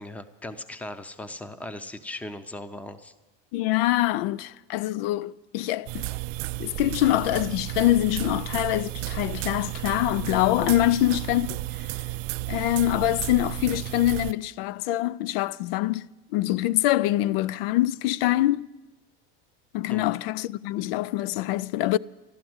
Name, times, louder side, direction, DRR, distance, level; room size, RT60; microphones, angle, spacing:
voice 1, 0.0-3.1 19.9-20.2, left 2 dB, 5° left, 0.6 m, -38 dB
voice 2, 3.5-6.1 6.6-11.6 12.5-16.1 16.3-18.7 19.7-22.0, left 15 dB, 75° left, 0.4 m, -24 dB
sound 1, 5.9-14.3, right 19 dB, 65° right, 0.5 m, -33 dB
13.5 x 11.5 x 7.8 m
supercardioid pair, 130°, 29 cm